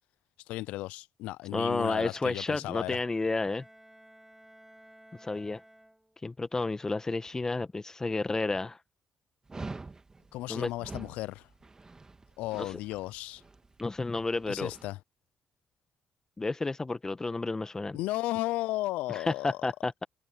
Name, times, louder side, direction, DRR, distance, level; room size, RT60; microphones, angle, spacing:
voice 1, 0.5-3.0 10.3-11.5 12.4-13.4 14.5-15.0 17.9-19.6, left 18 dB, 80° left, 0.5 m, -34 dB
voice 2, 1.5-3.6 5.2-5.6 6.2-8.8 10.5-10.7 12.6-12.8 13.8-14.7 16.4-18.0 19.1-20.0, left 3 dB, 25° left, 1.3 m, -31 dB
Bowed string instrument, 2.9-6.4, right 1 dB, 5° right, 5.1 m, -56 dB
Dog, 9.5-14.9, right 3 dB, 30° right, 2.3 m, -46 dB
hypercardioid pair, 50°, 2 cm